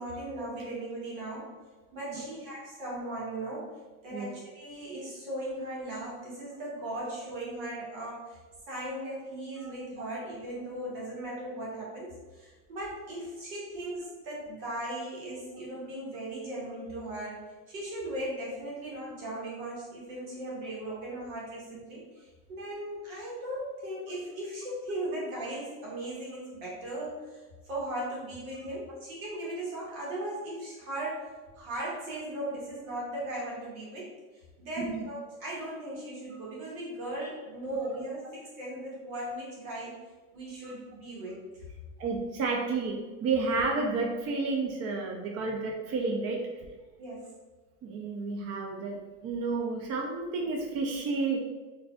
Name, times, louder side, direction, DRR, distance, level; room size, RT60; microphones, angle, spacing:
voice 1, 0.0-1.5 1.9-3.7 4.0-8.4 8.7-17.4 17.7-31.3 31.5-34.1 34.6-39.9 40.3-41.5 47.0-47.3, right 1 dB, 85° right, -5 dB, 1.5 m, -38 dB
voice 2, 42.0-46.4 47.8-49.0 49.2-51.4, right 3 dB, 40° right, 1 dB, 0.5 m, -31 dB
3.9 x 2.7 x 2.2 m, 1.2 s
supercardioid pair, 105°, 41 cm